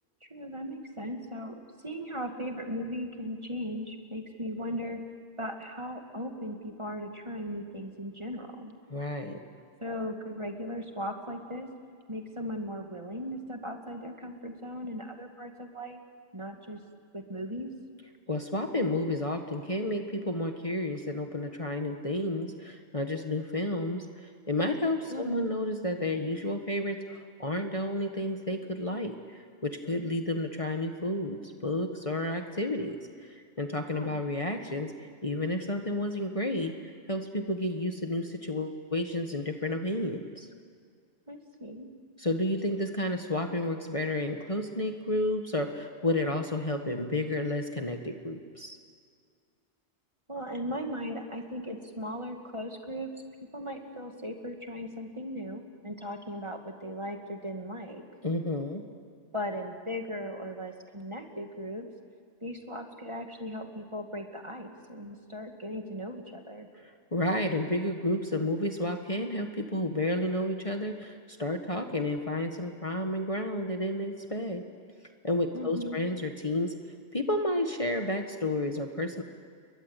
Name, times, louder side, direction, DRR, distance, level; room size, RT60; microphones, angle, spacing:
voice 1, 0.2-5.0 5.4-8.7 9.8-11.7 12.1-16.0 16.3-16.8 17.1-17.7 25.1-25.5 33.9-34.2 41.3-41.9 50.3-53.1 53.5-58.0 59.3-61.9 62.4-66.7 75.5-76.0, equal, 25° right, 4 dB, 2.2 m, -38 dB
voice 2, 8.9-9.4 18.3-33.0 33.2-40.5 42.2-48.8 58.2-58.8 66.8-74.6 75.2-76.7 77.1-79.2, left 1 dB, 30° left, 4 dB, 1.6 m, -31 dB
30.0 x 22.5 x 8.2 m, 2.1 s
omnidirectional pair, 1.1 m